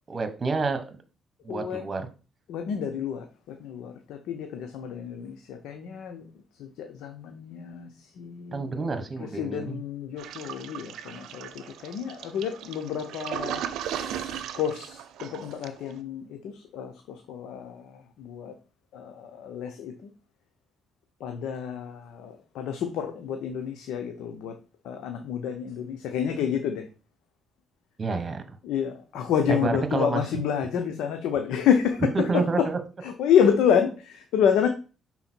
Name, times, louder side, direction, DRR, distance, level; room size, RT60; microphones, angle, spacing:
voice 1, 0.1-1.0 1.4-2.0 8.5-9.8 28.0-28.4 29.6-30.2 32.1-32.8, right 4 dB, 35° right, 8 dB, 1.3 m, -28 dB
voice 2, 1.5-1.9 2.5-6.3 6.6-18.5 18.9-20.1 21.2-24.6 24.8-26.9 28.6-32.7 33.0-34.7, left 8 dB, 90° left, 5 dB, 0.7 m, -29 dB
Toilet flush, 10.2-15.9, right 9 dB, 85° right, 0.6 m, -36 dB
5.8 x 4.2 x 4.4 m, 0.34 s
cardioid pair, 90°, 0 cm